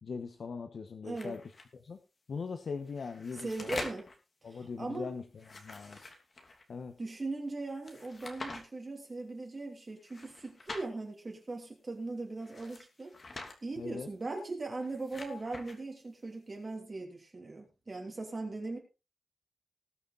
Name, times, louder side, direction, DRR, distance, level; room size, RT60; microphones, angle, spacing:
voice 1, 0.0-2.0 2.3-3.9 4.4-6.0 6.7-7.0 13.8-14.1, left 5 dB, 60° left, 7 dB, 1.2 m, -41 dB
voice 2, 1.0-1.4 3.4-4.1 4.4-5.1 7.0-13.1 13.6-18.8, right 3 dB, 30° right, 1 dB, 3.0 m, -39 dB
sound 1, 1.2-1.7 2.8-4.2 5.3-6.6 7.8-8.6 10.0-10.9 12.4-13.6 14.7-15.8, left 3 dB, 40° left, 2.8 m, -45 dB
20.0 x 6.7 x 4.2 m, 0.30 s
wide cardioid pair, 145°, 0 cm